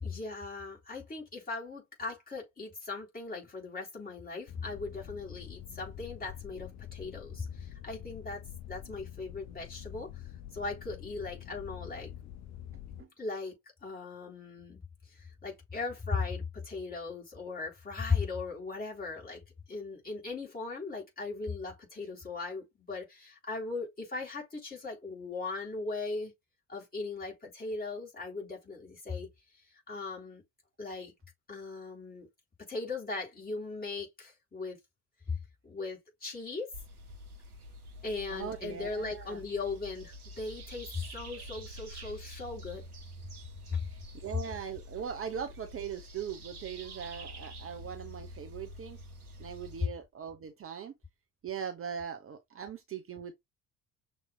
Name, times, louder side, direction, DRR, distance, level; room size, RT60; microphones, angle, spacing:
voice 1, 0.0-10.1 10.5-12.1 13.2-13.5 13.8-14.8 15.2-19.4 19.7-26.3 26.7-29.3 29.9-30.4 30.8-31.1 31.5-32.3 32.6-34.8 35.6-36.7 38.0-42.8 43.7-43.8, left 3 dB, 20° left, 3.4 m, -38 dB
sound 1, 4.5-13.0, left 11 dB, 40° left, 0.5 m, -46 dB
sound 2, 36.7-49.9, equal, 90° right, 0.9 m, -47 dB
voice 2, 38.3-39.4 43.9-49.0 49.4-50.9 51.4-53.3, right 7 dB, 30° right, 0.9 m, -40 dB
6.4 x 3.2 x 2.3 m
figure-of-eight pair, 55°, 44 cm